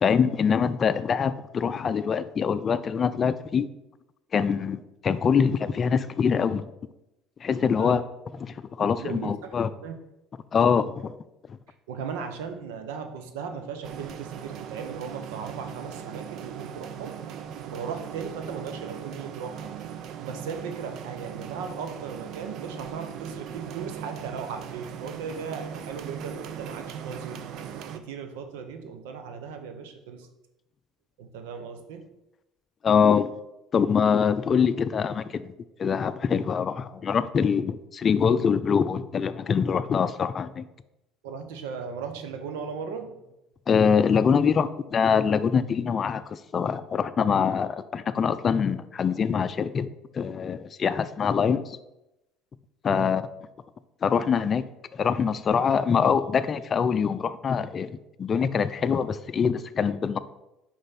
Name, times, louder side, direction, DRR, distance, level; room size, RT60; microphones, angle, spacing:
voice 1, 0.0-3.7 4.3-6.7 7.4-8.0 8.4-9.7 10.5-11.2 32.8-33.3 33.7-35.5 35.8-40.6 43.7-49.9 50.1-51.8 52.8-53.2 54.0-54.6 54.9-60.2, left 6 dB, 40° left, 13 dB, 0.4 m, -24 dB
voice 2, 8.8-10.0 11.9-17.2 17.7-27.4 27.9-30.3 31.2-32.1 41.2-43.2 52.8-53.2, right 6 dB, 85° right, 7 dB, 0.8 m, -37 dB
sound 1, 13.8-28.0, right 8 dB, 60° right, 0.6 m, -39 dB
5.3 x 5.1 x 5.8 m, 0.93 s
supercardioid pair, 90°, 0 cm